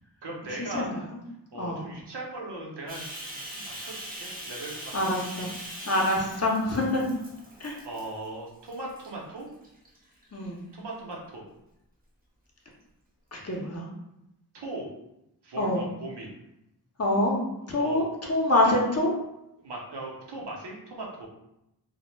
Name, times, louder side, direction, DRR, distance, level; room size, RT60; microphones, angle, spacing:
voice 1, 0.2-1.1 1.5-5.5 7.8-9.5 10.7-11.4 14.5-14.9 15.4-16.3 17.6-18.0 19.6-21.3, right 2 dB, 75° right, -2 dB, 0.7 m, -39 dB
voice 2, 1.5-1.9 4.9-5.5 5.9-7.0 7.6-7.8 10.3-10.6 13.3-13.8 15.6-15.8 17.0-17.4 17.7-19.1, left 1 dB, 35° left, -1 dB, 0.6 m, -25 dB
Bathtub (filling or washing), 2.9-8.3 8.7-9.1 9.6-10.5, right 1 dB, 20° right, 0.6 m, -41 dB
2.1 x 2.0 x 3.0 m, 0.86 s
wide cardioid pair, 55°, 41 cm